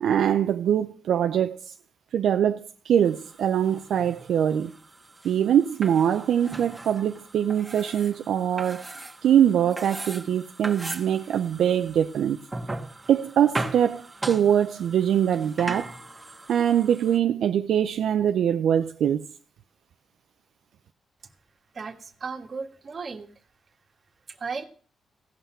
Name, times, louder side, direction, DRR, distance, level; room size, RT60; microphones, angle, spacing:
voice 1, 0.0-1.8 2.1-4.7 5.2-8.9 9.2-12.4 13.1-15.9 16.5-19.2, right 9 dB, 80° right, 0.5 m, -23 dB
sound 1, 3.0-17.2, right 2 dB, 20° right, 1.5 m, -39 dB
voice 2, 21.7-23.3 24.3-24.6, right 5 dB, 45° right, 1.6 m, -35 dB
16.0 x 5.7 x 7.3 m
cardioid pair, 75°, 0 cm